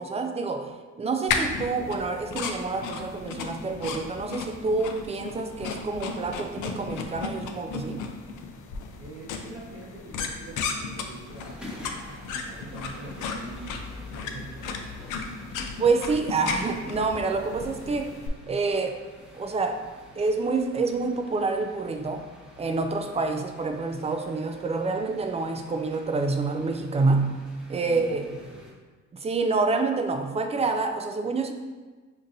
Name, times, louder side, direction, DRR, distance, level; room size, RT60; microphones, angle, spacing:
voice 1, 0.0-8.0 15.8-18.1 18.5-19.0 19.3-19.9 20.2-22.2 22.6-27.4 27.7-28.3 29.1-31.5, right 3 dB, 20° right, 5 dB, 0.3 m, -27 dB
sound 1, 1.3-18.3, left 5 dB, 80° left, 0.5 m, -35 dB
voice 2, 9.0-14.9 27.8-28.8, right 2 dB, 45° right, -7 dB, 0.9 m, -44 dB
sound 2, 11.2-28.7, left 1 dB, 5° right, 0.8 m, -48 dB
5.2 x 2.5 x 2.7 m, 1.3 s
cardioid pair, 90°, 30 cm